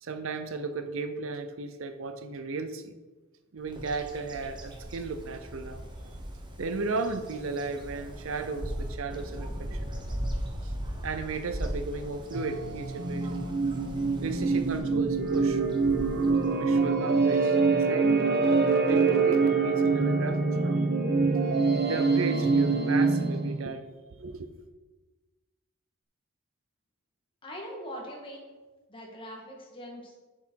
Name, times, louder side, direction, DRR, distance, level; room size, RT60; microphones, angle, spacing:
voice 1, 0.0-3.0 3.5-5.8 6.6-9.9 10.6-10.7 11.0-13.4 14.2-15.6 16.6-18.1 18.8-20.8 21.8-23.8 24.2-24.5, right 4 dB, 60° right, 9 dB, 0.6 m, -35 dB
Bird vocalization bird call bird song, 3.7-16.9, equal, 20° right, 1.1 m, -39 dB
sound 1, 12.3-23.7, right 4 dB, 45° right, 1.0 m, -25 dB
voice 2, 27.4-28.5 28.9-30.1, equal, 25° left, -1 dB, 1.8 m, -41 dB
8.2 x 7.2 x 4.7 m, 1.2 s
head